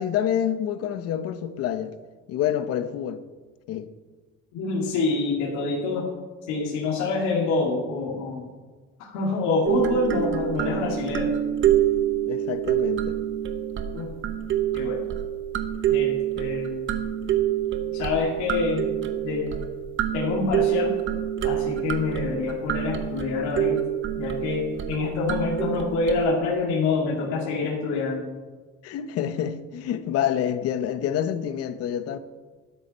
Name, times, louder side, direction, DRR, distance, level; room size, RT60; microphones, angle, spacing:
voice 1, 0.0-2.0 2.3-3.2 3.7-3.9 12.3-13.2 28.8-32.2, left 10 dB, 55° left, 0.9 m, -27 dB
voice 2, 4.5-6.1 6.5-8.5 9.0-11.3 13.9-14.1 14.7-15.0 15.9-17.0 17.9-18.9 19.2-19.6 20.1-20.9 21.4-23.8 24.2-28.3, left 3 dB, 80° left, 2.7 m, -26 dB
sound 1, 9.7-26.2, right 11 dB, 45° right, 1.1 m, -27 dB
13.5 x 12.5 x 4.4 m
cardioid pair, 155°, 29 cm